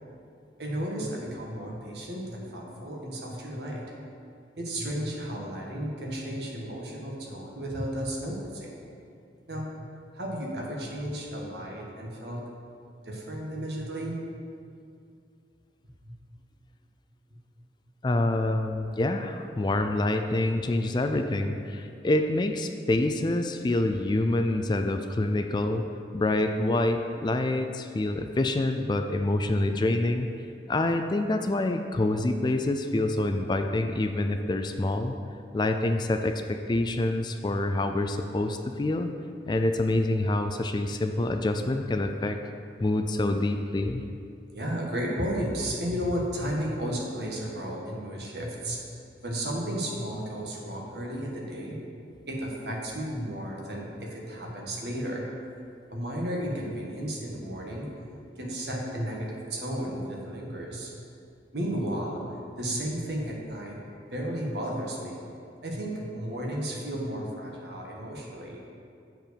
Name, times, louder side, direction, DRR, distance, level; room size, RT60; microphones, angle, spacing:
voice 1, 0.6-3.8 4.6-8.7 9.5-9.8 10.1-12.4 13.0-14.2 44.5-51.8 52.3-55.3 55.9-58.0 58.4-61.0 61.5-62.3 62.6-63.8 64.1-65.2 65.6-68.6, equal, 70° right, -2 dB, 1.5 m, -33 dB
voice 2, 18.0-25.9 26.1-30.3 30.7-35.1 35.5-39.1 39.5-42.4 42.8-44.0, left 2 dB, 25° left, 6 dB, 0.3 m, -26 dB
7.7 x 4.5 x 6.9 m, 2.4 s
head